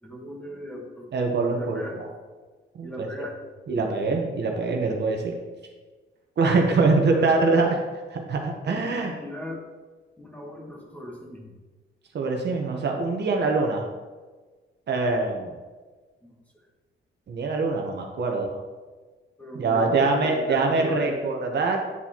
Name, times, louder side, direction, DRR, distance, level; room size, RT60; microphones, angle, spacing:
voice 1, 0.0-1.1 1.5-2.0 2.8-3.4 6.9-7.5 8.6-9.6 10.2-11.5 16.2-16.3 19.4-21.3, equal, 5° left, -1 dB, 1.2 m, -37 dB
voice 2, 1.1-1.8 2.7-3.1 3.7-5.3 6.4-7.8 8.1-9.1 12.1-13.9 14.9-15.5 17.3-18.6 19.5-21.8, right 3 dB, 55° right, 2 dB, 0.9 m, -24 dB
9.8 x 4.5 x 2.9 m, 1.3 s
wide cardioid pair, 140°, 21 cm